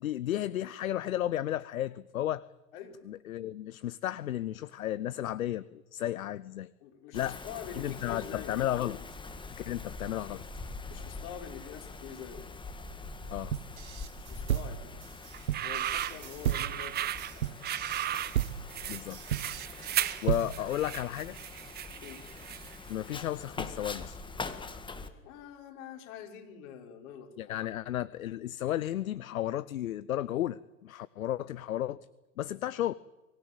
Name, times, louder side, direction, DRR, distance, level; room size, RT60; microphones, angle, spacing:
voice 1, 0.0-2.4 3.1-6.7 7.1-7.4 7.7-9.1 9.6-10.5 13.3-13.5 18.9-19.2 19.7-21.4 22.9-24.2 27.4-32.1 32.4-32.9, left 12 dB, 75° left, 19 dB, 0.7 m, -33 dB
voice 2, 6.8-8.6 10.9-12.4 14.1-14.9 15.6-17.6 22.0-22.2 25.2-27.3, left 8 dB, 55° left, 4 dB, 4.7 m, -45 dB
Wind, 7.1-25.1, left 3 dB, 10° left, 2.0 m, -44 dB
sound 1, 13.5-20.8, right 12 dB, 75° right, 0.9 m, -34 dB
sound 2, 15.3-22.9, right 11 dB, 25° right, 0.8 m, -36 dB
24.0 x 16.5 x 9.2 m, 1.1 s
figure-of-eight pair, 95°, 42 cm